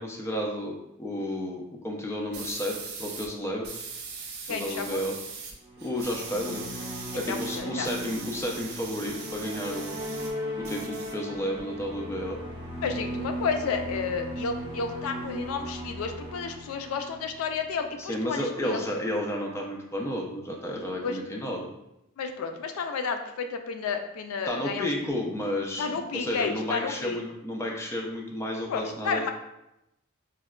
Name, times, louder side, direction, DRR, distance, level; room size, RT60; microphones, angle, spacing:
voice 1, 0.0-3.7 4.5-5.2 5.8-6.6 7.2-10.0 10.6-12.4 18.0-21.7 24.5-29.3, left 1 dB, 15° left, 0 dB, 0.3 m, -32 dB
sound 1, 2.3-3.3 3.6-5.5 5.8-10.3 10.6-11.6, right 5 dB, 50° right, 0.5 m, -40 dB
voice 2, 4.5-5.0 7.1-7.9 12.8-18.8 21.0-21.2 22.2-24.9 25.8-27.2 28.7-29.3, left 5 dB, 85° left, 6 dB, 0.3 m, -31 dB
sound 2, 5.6-18.1, equal, 20° right, 0.9 m, -37 dB
4.6 x 2.1 x 2.2 m, 0.88 s
head